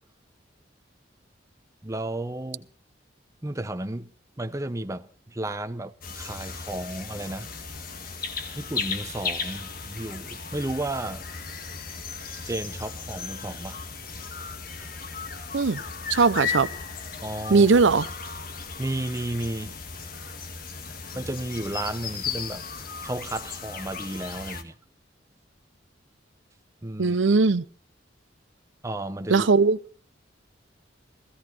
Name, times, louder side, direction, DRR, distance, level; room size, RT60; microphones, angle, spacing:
voice 1, 1.8-2.7 3.4-4.1 4.4-7.5 8.6-11.2 12.5-13.8 14.8-14.9 17.2-17.7 18.8-19.8 21.1-22.6 23.0-24.7 26.8-27.2 28.8-29.5, right 1 dB, 15° right, 0.9 m, -33 dB
sound 1, 6.0-24.6, left 5 dB, 50° left, 1.8 m, -36 dB
voice 2, 16.1-16.7 17.5-18.1 27.0-27.6 29.3-29.8, right 4 dB, 85° right, 0.7 m, -19 dB
16.5 x 15.5 x 4.3 m
head